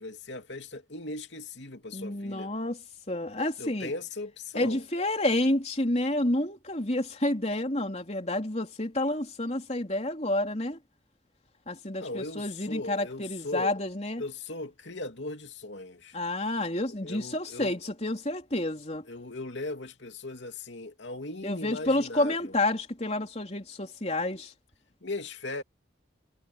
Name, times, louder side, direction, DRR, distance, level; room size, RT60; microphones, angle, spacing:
voice 1, 0.0-2.5 3.6-4.8 12.0-13.7 14.2-16.2 17.0-17.8 19.1-22.6 25.0-25.6, left 2 dB, 75° left, 2.7 m, -38 dB
voice 2, 1.9-2.8 3.1-3.9 4.5-10.8 11.7-14.2 16.1-19.0 21.4-24.5, left 1 dB, 35° left, 3.7 m, -29 dB
head